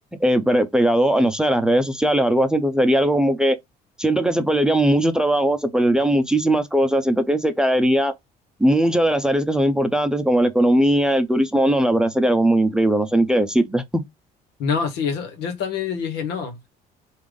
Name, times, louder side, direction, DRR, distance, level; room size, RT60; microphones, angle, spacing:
voice 1, 0.2-3.6 4.0-8.1 8.6-14.0, right 1 dB, 5° right, 0.6 m, -19 dB
voice 2, 14.6-16.7, left 6 dB, 85° left, 1.2 m, -26 dB
3.4 x 2.5 x 3.7 m
cardioid pair, 110°, 17 cm